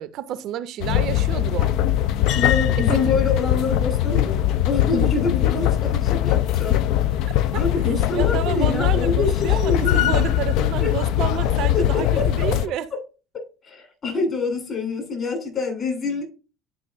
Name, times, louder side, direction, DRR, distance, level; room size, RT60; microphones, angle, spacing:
voice 1, 0.0-1.7 2.8-3.0 7.5-7.6 8.1-12.9, right 11 dB, 55° right, 0.5 m, -30 dB
sound 1, 0.8-12.7, left 12 dB, 60° left, 0.4 m, -21 dB
voice 2, 2.3-6.8 7.5-10.2 10.8-10.9 11.7-12.6 12.9-13.0 13.3-16.2, left 4 dB, 40° left, 3.9 m, -26 dB
11.0 x 4.8 x 2.5 m
figure-of-eight pair, 60°, 0 cm